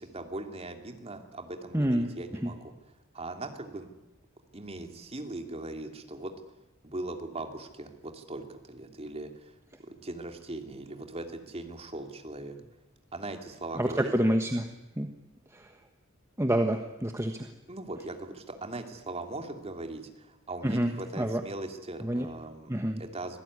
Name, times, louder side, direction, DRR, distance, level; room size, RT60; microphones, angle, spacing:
voice 1, 0.0-2.7 3.1-3.9 4.5-6.3 6.8-9.6 9.9-12.6 13.1-14.1 17.7-23.4, right 2 dB, 30° right, 5 dB, 2.8 m, -40 dB
voice 2, 1.7-2.1 2.4-2.5 13.8-14.7 15.0-15.1 15.5-15.7 16.4-17.5 20.6-21.4 22.0-22.3 22.7-23.0, right 1 dB, 15° right, 5 dB, 1.3 m, -27 dB
25.5 x 17.5 x 9.8 m, 0.98 s
head